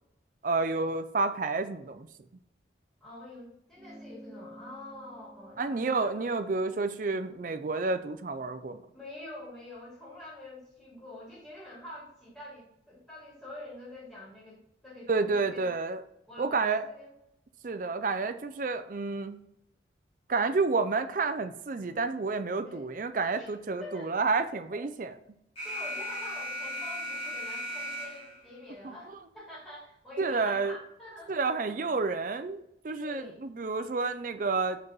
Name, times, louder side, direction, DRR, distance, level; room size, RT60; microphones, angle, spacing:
voice 1, 0.4-2.1 5.6-8.8 15.1-16.0 16.4-16.8 17.6-19.4 20.3-25.1 28.8-28.9 30.2-30.8 31.3-32.6 32.8-34.8, right 4 dB, 45° right, 9 dB, 0.4 m, -30 dB
voice 2, 3.0-6.4 8.9-15.7 16.3-17.1 22.6-22.8 23.3-24.1 24.7-24.8 25.6-31.4 32.9-33.5, left 1 dB, 10° left, -9 dB, 2.8 m, -46 dB
sound 1, 3.8-8.5, equal, 20° right, 0.9 m, -52 dB
Alarm, 25.6-28.5, equal, 30° left, 2.2 m, -36 dB
6.0 x 5.1 x 4.0 m, 0.79 s
head